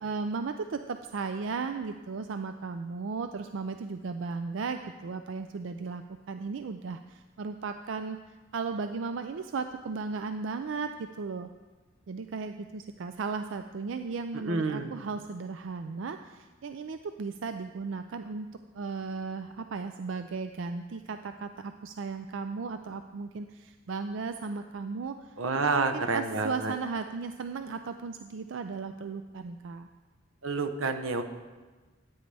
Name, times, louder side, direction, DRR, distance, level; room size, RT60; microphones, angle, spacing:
voice 1, 0.0-6.0 6.3-8.2 8.5-11.5 12.1-18.5 18.7-25.3 25.6-29.9, right 4 dB, 65° right, 8 dB, 0.4 m, -35 dB
voice 2, 14.3-14.9 25.4-26.7 30.4-31.2, right 3 dB, 90° right, 9 dB, 0.8 m, -29 dB
15.0 x 8.9 x 3.4 m, 1.3 s
head